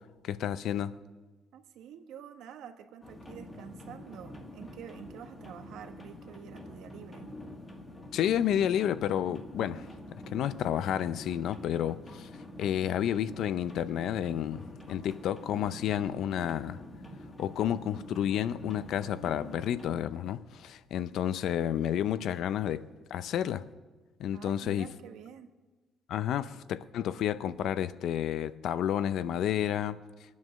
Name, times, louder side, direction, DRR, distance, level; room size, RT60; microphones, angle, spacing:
voice 1, 0.2-0.9 8.1-9.8 10.3-12.3 12.6-16.8 17.4-22.8 23.1-23.6 24.2-24.9 26.1-30.0, left 10 dB, 60° left, 0.6 m, -30 dB
voice 2, 1.5-7.3 24.3-25.5, right 9 dB, 75° right, 1.2 m, -48 dB
sound 1, 3.0-20.0, left 1 dB, 15° left, 1.6 m, -46 dB
22.5 x 9.4 x 6.4 m
cardioid pair, 175°, 0 cm